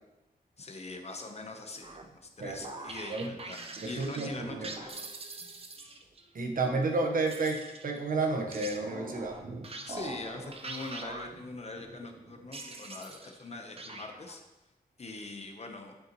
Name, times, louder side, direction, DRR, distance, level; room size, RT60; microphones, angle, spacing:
voice 1, 0.6-5.1 9.8-14.4 15.0-15.9, left 3 dB, 45° left, 4 dB, 0.9 m, -43 dB
sound 1, 1.8-6.2 7.3-13.5 13.8-14.4, right 3 dB, 40° right, 0.6 m, -44 dB
voice 2, 3.8-4.7 6.3-9.4, right 3 dB, 60° right, 2 dB, 1.1 m, -31 dB
11.0 x 5.7 x 3.0 m, 1.0 s
wide cardioid pair, 160°, 16 cm